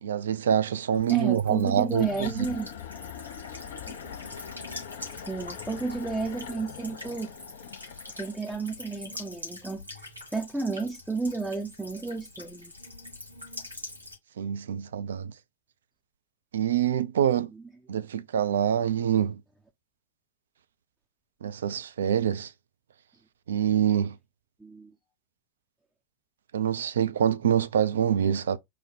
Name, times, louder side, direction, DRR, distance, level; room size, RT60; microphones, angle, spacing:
voice 1, 0.0-2.5 14.4-15.3 16.5-17.5 17.9-19.4 21.4-22.5 23.5-24.2 26.5-28.6, right 9 dB, 65° right, 0.4 m, -25 dB
Buzz / Water tap faucet / Trickle dribble, 0.9-14.1, left 2 dB, 90° right, 2.1 m, -44 dB
voice 2, 1.1-2.7 3.9-4.0 5.0-7.3 8.2-12.7 17.5-17.6 24.6-24.9, right 3 dB, 5° right, 0.5 m, -32 dB
sound 1, 1.9-8.4, left 8 dB, 55° left, 0.6 m, -42 dB
4.3 x 2.1 x 4.1 m
figure-of-eight pair, 90°, 0 cm